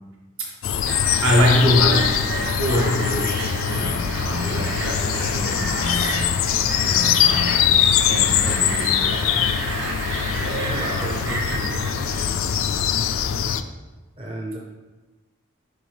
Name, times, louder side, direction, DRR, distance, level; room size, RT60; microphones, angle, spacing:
sound 1, 0.6-13.6, left 8 dB, 70° left, 0.3 m, -22 dB
sound 2, 0.8-12.6, right 2 dB, 55° right, 1.0 m, -31 dB
voice 1, 1.2-6.3 6.8-7.7 8.1-9.5 10.3-11.1, equal, 75° right, -3 dB, 1.6 m, -24 dB
voice 2, 10.6-12.5 14.2-14.6, right 1 dB, 25° right, -2 dB, 0.6 m, -34 dB
9.5 x 3.5 x 3.3 m, 1.2 s
head